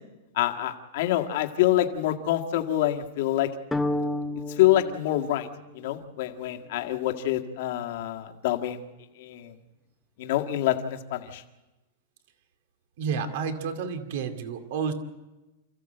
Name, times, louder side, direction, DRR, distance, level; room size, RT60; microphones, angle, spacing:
voice 1, 0.3-3.5 4.5-5.5 5.7-8.8 9.2-9.5 10.2-11.4, left 13 dB, 55° left, 4 dB, 1.8 m, -26 dB
sound 1, 3.7-6.0, left 1 dB, 5° left, 0.8 m, -31 dB
voice 2, 13.0-14.9, right 6 dB, 60° right, 7 dB, 2.4 m, -30 dB
29.0 x 14.5 x 7.9 m, 1.1 s
supercardioid pair, 155°, 0 cm